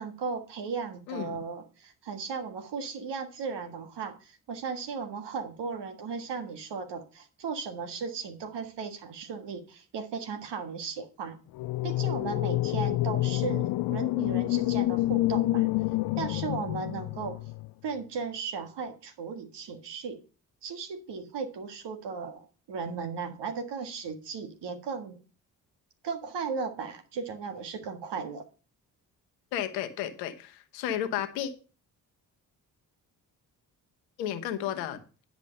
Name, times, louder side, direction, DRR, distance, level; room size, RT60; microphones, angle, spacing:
voice 1, 0.0-11.4 11.8-15.7 16.2-17.4 17.8-20.2 20.6-25.2 26.0-28.4, right 5 dB, 55° right, 7 dB, 1.7 m, -36 dB
sound 1, 11.5-17.7, left 17 dB, 55° left, 0.5 m, -28 dB
voice 2, 29.5-31.5 34.2-35.0, left 10 dB, 80° left, 8 dB, 1.2 m, -32 dB
10.0 x 5.1 x 6.6 m, 0.34 s
hypercardioid pair, 40°, 49 cm